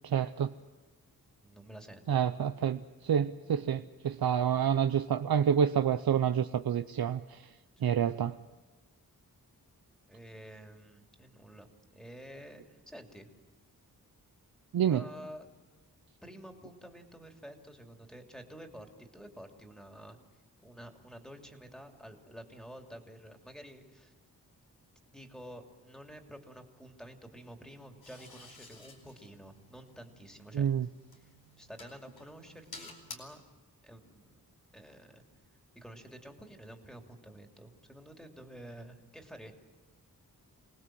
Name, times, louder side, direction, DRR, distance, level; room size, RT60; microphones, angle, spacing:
voice 1, 0.0-0.5 2.1-7.5 7.8-8.3 14.7-15.0 30.5-30.9, right 8 dB, 75° right, 9 dB, 0.8 m, -28 dB
voice 2, 1.4-2.2 7.8-7.9 10.1-13.3 14.9-15.5 16.2-20.2 20.6-24.1 25.1-30.7 31.2-33.4 33.8-34.3 34.7-35.2 35.7-39.5, equal, ahead, 3 dB, 2.9 m, -50 dB
sound 1, 28.0-33.1, left 3 dB, 75° left, 4.6 m, -52 dB
27.5 x 19.5 x 7.7 m, 1.2 s
wide cardioid pair, 115°, 37 cm